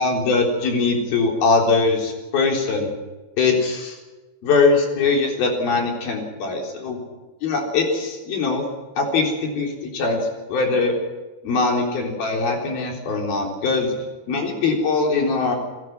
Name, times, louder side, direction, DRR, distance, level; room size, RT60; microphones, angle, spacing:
voice 1, 0.0-2.9 3.4-4.0 4.4-7.0 7.4-8.7 9.0-11.0 11.4-15.6, left 3 dB, 55° left, 2 dB, 5.5 m, -21 dB
30.0 x 17.5 x 6.2 m, 1.2 s
omnidirectional pair, 5.1 m